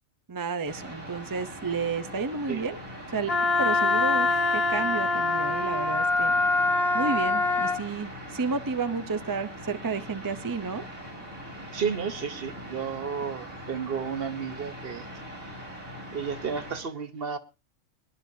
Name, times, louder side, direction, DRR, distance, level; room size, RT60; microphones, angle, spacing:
voice 1, 0.3-2.8 3.1-3.3 3.6-6.3 6.9-10.8, right 4 dB, 30° right, 11 dB, 0.4 m, -31 dB
sound 1, 0.6-16.8, equal, 85° right, 5.4 m, -41 dB
Wind instrument woodwind instrument, 3.3-7.8, left 3 dB, 50° left, 1.4 m, -24 dB
voice 2, 11.7-15.1 16.1-17.4, right 6 dB, 50° right, 11 dB, 1.0 m, -32 dB
24.0 x 11.0 x 2.7 m, 0.27 s
omnidirectional pair, 1.4 m